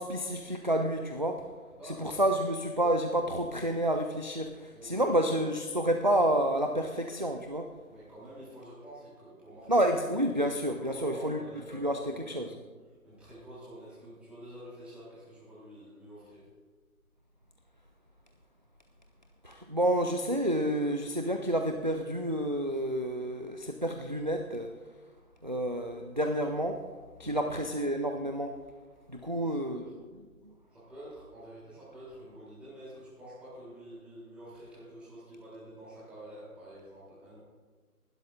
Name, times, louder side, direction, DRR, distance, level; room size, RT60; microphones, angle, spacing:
voice 1, 0.0-1.4 1.8-7.7 9.7-11.4 11.7-12.0 12.3-12.5 19.4-24.7 25.4-26.8 27.2-28.6 29.1-30.2, right 1 dB, 35° right, 5 dB, 0.4 m, -29 dB
voice 2, 1.7-2.4 4.7-5.2 7.9-9.9 10.2-12.6 13.0-16.5 27.2-27.5 29.2-29.8 30.7-37.4, right 1 dB, 5° right, -10 dB, 3.1 m, -48 dB
19.0 x 12.0 x 2.5 m, 1.4 s
figure-of-eight pair, 155°, 44 cm